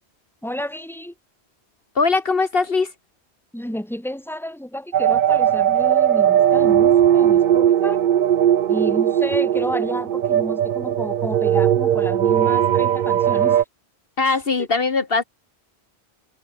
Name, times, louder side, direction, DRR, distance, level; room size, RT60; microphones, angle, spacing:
voice 1, 0.4-1.1 3.5-8.0 8.7-13.6 14.2-14.7, left 1 dB, ahead, 3.0 m, -31 dB
voice 2, 1.9-2.9 14.2-15.2, left 4 dB, 60° left, 1.7 m, -20 dB
sound 1, 4.9-13.6, right 10 dB, 55° right, 0.6 m, -18 dB
omnidirectional pair, 1.1 m